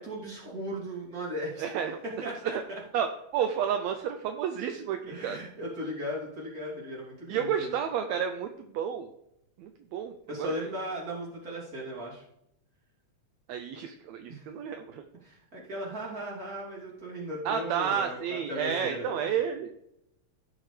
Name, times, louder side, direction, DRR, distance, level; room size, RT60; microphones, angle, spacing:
voice 1, 0.0-1.7 2.2-2.8 5.1-7.7 10.3-12.2 14.3-14.4 15.2-19.2, equal, 30° right, -5 dB, 3.2 m, -37 dB
voice 2, 1.6-2.0 2.4-2.5 2.9-5.4 7.3-9.1 9.6-10.7 13.5-15.0 17.5-19.7, right 8 dB, 75° right, 6 dB, 1.8 m, -31 dB
16.5 x 6.2 x 3.3 m, 0.80 s
omnidirectional pair, 3.3 m